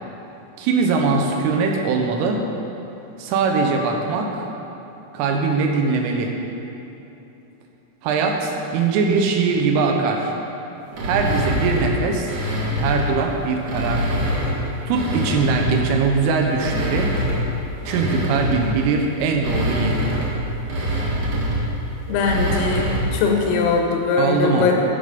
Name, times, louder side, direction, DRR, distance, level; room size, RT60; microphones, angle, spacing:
voice 1, 0.6-2.5 3.2-4.5 5.1-6.3 8.0-10.3 11.0-12.3 12.8-14.2 14.9-17.1 17.9-20.1 24.2-24.7, right 4 dB, 80° right, 2 dB, 3.4 m, -21 dB
sound 1, 10.9-13.2 13.6-16.0 16.4-23.2, equal, 60° right, 1.9 m, -24 dB
voice 2, 22.1-24.7, left 5 dB, 85° left, 1 dB, 3.9 m, -21 dB
15.0 x 5.5 x 5.2 m, 3.0 s
omnidirectional pair, 5.9 m